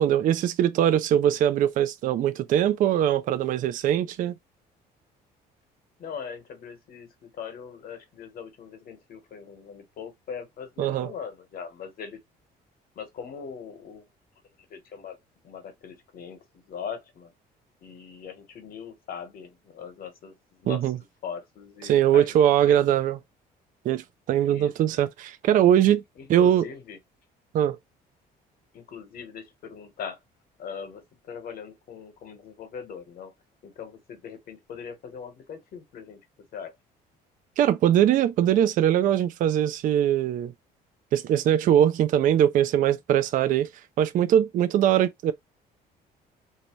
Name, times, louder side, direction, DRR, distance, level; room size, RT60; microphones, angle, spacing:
voice 1, 0.0-4.3 10.8-11.1 20.7-21.0 21.8-23.2 23.9-26.0 26.3-26.6 27.5-27.8 37.6-40.5 41.1-43.7 44.0-45.3, right 10 dB, 55° right, 0.4 m, -21 dB
voice 2, 6.0-12.2 12.9-14.1 14.7-15.2 15.4-17.3 17.8-20.9 21.2-22.8 24.5-24.7 26.2-27.0 28.7-30.2 30.6-33.3 33.6-36.2 36.5-36.8, left 6 dB, 60° left, 1.1 m, -40 dB
2.7 x 2.1 x 3.0 m
cardioid pair, 110°, 17 cm